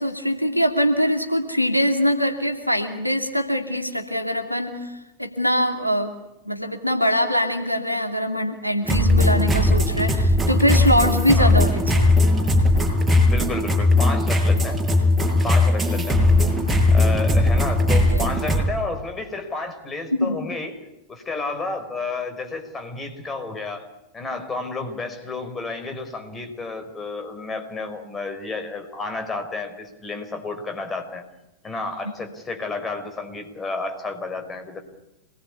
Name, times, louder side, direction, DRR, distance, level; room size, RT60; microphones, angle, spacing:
voice 1, 0.0-6.1 6.4-12.1 18.1-18.3 20.2-20.4, equal, 90° left, 4 dB, 2.7 m, -23 dB
sound 1, 8.9-18.6, left 2 dB, 5° right, 7.5 m, -18 dB
voice 2, 13.3-14.8 15.4-16.2 16.9-20.8 21.1-31.2 31.6-34.8, left 3 dB, 15° left, 7 dB, 5.0 m, -31 dB
27.0 x 20.5 x 8.5 m, 0.93 s
figure-of-eight pair, 90°, 0 cm